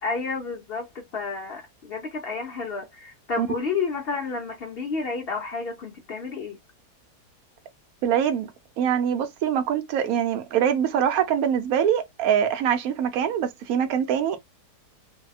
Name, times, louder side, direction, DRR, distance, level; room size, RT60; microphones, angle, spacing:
voice 1, 0.0-6.6, left 4 dB, 55° left, 0.6 m, -31 dB
voice 2, 8.0-8.5 8.8-14.4, right 9 dB, 70° right, 1.0 m, -23 dB
2.7 x 2.2 x 2.4 m
omnidirectional pair, 1.7 m